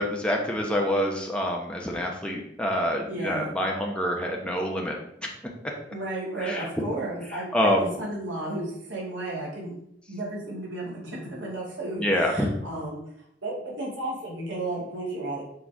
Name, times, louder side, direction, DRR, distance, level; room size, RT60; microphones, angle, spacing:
voice 1, 0.0-5.0 6.4-6.7 7.5-7.9 12.0-12.5, equal, 5° left, 0 dB, 1.0 m, -26 dB
voice 2, 3.1-3.5 5.9-9.7 10.1-13.0 13.4-15.4, right 2 dB, 85° right, -4 dB, 2.8 m, -33 dB
6.5 x 4.4 x 4.8 m, 0.74 s
head